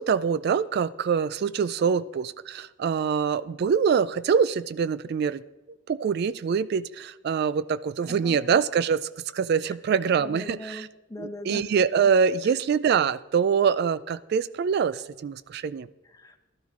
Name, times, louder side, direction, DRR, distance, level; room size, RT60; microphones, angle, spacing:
voice 1, 0.0-5.4 5.9-10.9 11.2-15.9, right 6 dB, 55° right, 16 dB, 0.3 m, -24 dB
voice 2, 8.0-8.5 10.2-11.6 12.4-12.6 16.0-16.4, left 1 dB, 20° left, 6 dB, 1.0 m, -40 dB
12.5 x 12.0 x 3.6 m, 1.1 s
head